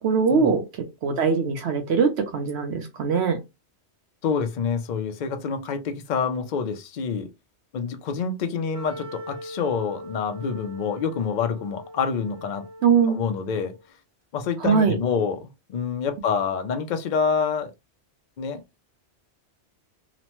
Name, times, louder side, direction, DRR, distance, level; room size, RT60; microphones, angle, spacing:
voice 1, 0.0-3.4 12.8-13.2 14.6-15.0, right 5 dB, 75° right, 0.9 m, -22 dB
voice 2, 4.2-7.3 7.7-12.6 13.1-13.8 14.3-17.7 18.4-18.8, left 6 dB, 55° left, 0.5 m, -27 dB
Wind instrument woodwind instrument, 8.7-13.8, equal, 55° right, 1.0 m, -41 dB
3.0 x 2.1 x 2.8 m
omnidirectional pair, 1.2 m